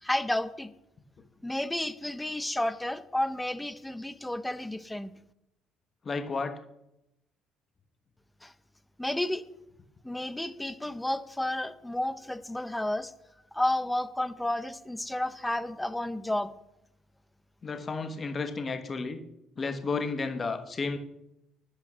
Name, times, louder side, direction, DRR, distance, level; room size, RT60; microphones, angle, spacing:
voice 1, 0.0-0.7 1.4-5.1 8.4-8.5 9.0-9.5 10.0-13.1 13.5-16.5, left 1 dB, 5° left, 13 dB, 0.7 m, -31 dB
voice 2, 6.0-6.5 17.6-19.2 19.6-21.0, left 4 dB, 25° left, 7 dB, 1.2 m, -32 dB
11.5 x 8.8 x 6.1 m, 0.82 s
cardioid pair, 165°, 0 cm